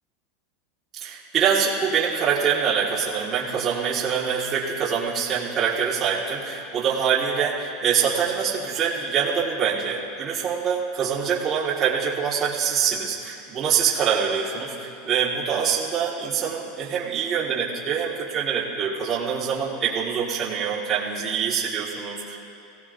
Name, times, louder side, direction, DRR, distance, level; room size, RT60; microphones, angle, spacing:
voice 1, 1.0-22.4, right 7 dB, 30° right, -7 dB, 1.8 m, -25 dB
24.0 x 17.0 x 2.7 m, 2.9 s
supercardioid pair, 150°, 0 cm